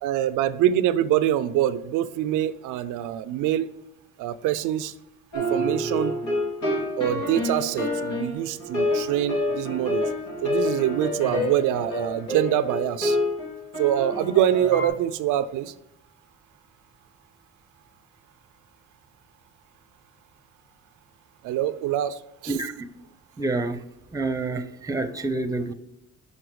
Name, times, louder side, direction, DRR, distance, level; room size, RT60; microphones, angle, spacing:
voice 1, 0.0-3.7 4.2-4.9 5.3-6.2 7.0-10.0 10.4-13.2 13.8-15.7 21.4-22.5, right 12 dB, 90° right, 13 dB, 0.5 m, -25 dB
sound 1, 5.3-14.9, left 1 dB, 80° left, 2.9 m, -28 dB
voice 2, 22.5-23.0 23.4-23.8 24.1-25.7, right 2 dB, 10° right, 10 dB, 0.7 m, -28 dB
6.4 x 5.4 x 4.7 m, 0.79 s
cardioid pair, 90°, 30 cm